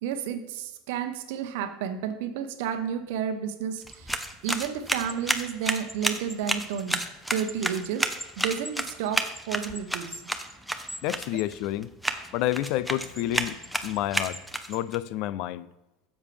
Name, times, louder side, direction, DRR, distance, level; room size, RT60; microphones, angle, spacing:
voice 1, 0.0-7.0 7.3-8.1 8.4-10.2, right 8 dB, 75° right, 0.9 m, -31 dB
sound 1, 3.8-15.0, equal, ahead, 0.7 m, -32 dB
voice 2, 11.0-11.9 12.3-14.4 14.7-15.7, left 14 dB, 60° left, 0.4 m, -29 dB
10.0 x 7.3 x 3.3 m
supercardioid pair, 120°, 0 cm